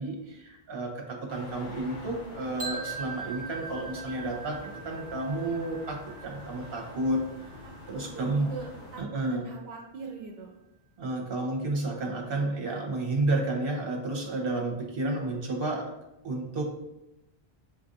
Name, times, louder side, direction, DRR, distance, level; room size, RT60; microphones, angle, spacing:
voice 1, 0.0-7.5 7.9-8.5 9.0-9.4 11.0-15.9 16.2-16.6, right 2 dB, 65° right, 1 dB, 1.1 m, -31 dB
sound 1, 1.3-9.0, left 2 dB, 85° left, 1.1 m, -47 dB
sound 2, 2.6-8.5, right 4 dB, 50° right, 1.0 m, -42 dB
voice 2, 7.6-10.6, right 3 dB, 85° right, 0 dB, 0.9 m, -42 dB
6.9 x 2.5 x 2.6 m, 0.92 s
omnidirectional pair, 1.0 m